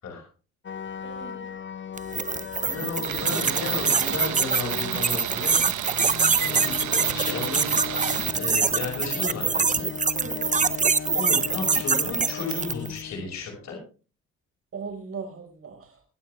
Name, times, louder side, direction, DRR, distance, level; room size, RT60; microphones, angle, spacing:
sound 1, 0.6-13.7, left 8 dB, 40° left, 0.8 m, -38 dB
voice 1, 1.0-1.5 10.1-10.6 14.7-16.0, right 5 dB, 50° right, 5 dB, 5.0 m, -39 dB
sound 2, 2.0-12.9, right 5 dB, 25° right, 0.8 m, -24 dB
voice 2, 2.7-5.6 6.5-7.7 8.3-9.9 11.1-13.8, left 4 dB, 65° left, -1 dB, 5.7 m, -33 dB
Tools, 3.0-8.4, right 13 dB, 75° right, 1.0 m, -33 dB
24.5 x 8.7 x 3.3 m, 0.35 s
cardioid pair, 90°, 30 cm